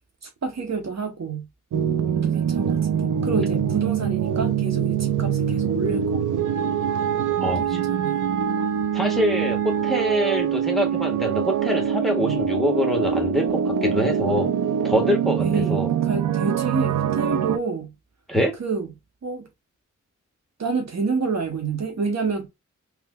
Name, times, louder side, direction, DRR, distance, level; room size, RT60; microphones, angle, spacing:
voice 1, 0.2-1.5 2.2-6.5 7.4-8.3 12.2-12.4 15.4-17.9 18.6-18.9 19.2-19.5 20.6-22.5, right 4 dB, 55° right, 1.0 m, -28 dB
sound 1, 1.7-17.6, right 8 dB, 75° right, 0.5 m, -24 dB
voice 2, 7.4-7.8 8.9-14.5 14.8-15.9 18.3-18.5, left 1 dB, ahead, 1.5 m, -25 dB
3.6 x 3.3 x 2.3 m
cardioid pair, 65°, 31 cm